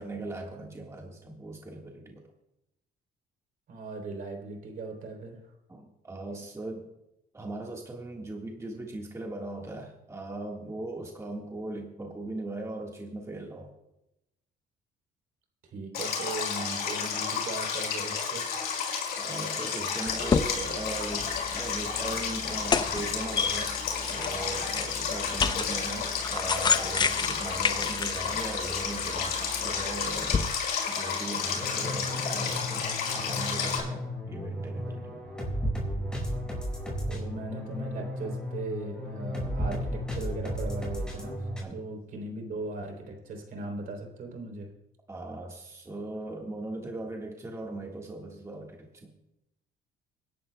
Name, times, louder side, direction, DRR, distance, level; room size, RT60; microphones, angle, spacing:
voice 1, 0.0-2.2 5.7-6.9 7.3-13.7 19.2-23.7 24.1-30.5 30.9-32.9 33.1-35.2 41.6-41.8 45.1-49.1, right 2 dB, 15° right, 0 dB, 1.6 m, -39 dB
voice 2, 3.7-5.4 15.7-18.5 37.0-41.4 41.7-44.7, right 3 dB, 60° right, 3 dB, 3.3 m, -38 dB
Stream, 15.9-33.8, left 6 dB, 70° left, 5.2 m, -32 dB
sound 1, 20.1-30.4, left 5 dB, 25° left, 0.6 m, -31 dB
sound 2, 31.5-41.6, equal, 5° left, 5.3 m, -34 dB
25.0 x 11.0 x 2.2 m, 0.89 s
cardioid pair, 110°, 17 cm